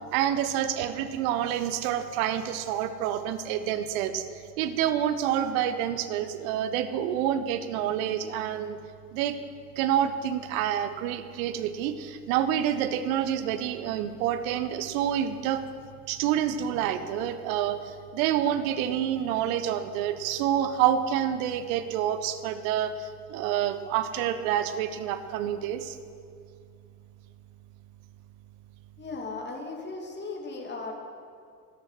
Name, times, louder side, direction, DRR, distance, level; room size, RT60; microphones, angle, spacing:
voice 1, 0.1-8.8 9.1-9.4 9.8-15.6 16.1-26.0, right 10 dB, 55° right, 11 dB, 1.2 m, -28 dB
voice 2, 29.0-31.0, left 3 dB, 20° left, 0 dB, 2.4 m, -37 dB
13.0 x 11.5 x 6.2 m, 2.3 s
figure-of-eight pair, 70°, 49 cm